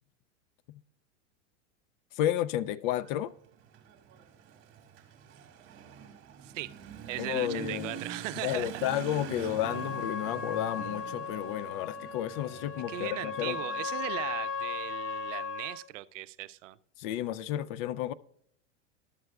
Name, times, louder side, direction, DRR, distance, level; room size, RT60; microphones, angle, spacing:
voice 1, 2.2-3.3 7.2-8.0 8.4-13.6 17.0-18.1, left 12 dB, 45° left, 0.4 m, -32 dB
Motorcycle / Accelerating revving vroom, 2.9-15.2, right 8 dB, 35° right, 1.9 m, -45 dB
voice 2, 6.4-6.7 7.1-8.9 9.4-9.5 12.9-16.8, right 16 dB, 80° right, 0.5 m, -38 dB
Trumpet, 9.6-15.8, left 5 dB, 75° left, 1.2 m, -37 dB
12.5 x 7.6 x 2.3 m
supercardioid pair, 130°, 37 cm